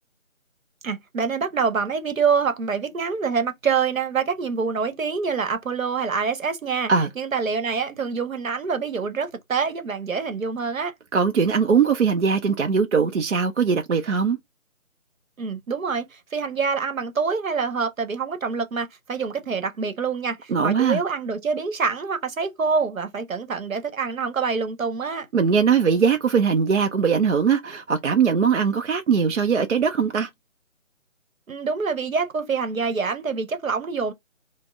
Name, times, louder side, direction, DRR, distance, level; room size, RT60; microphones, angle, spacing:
voice 1, 0.8-10.9 15.4-25.3 31.5-34.1, right 5 dB, 75° right, 0.9 m, -26 dB
voice 2, 11.1-14.4 20.5-21.0 25.3-30.3, right 6 dB, 60° right, 0.5 m, -20 dB
4.1 x 2.0 x 3.5 m
figure-of-eight pair, 175°, 40 cm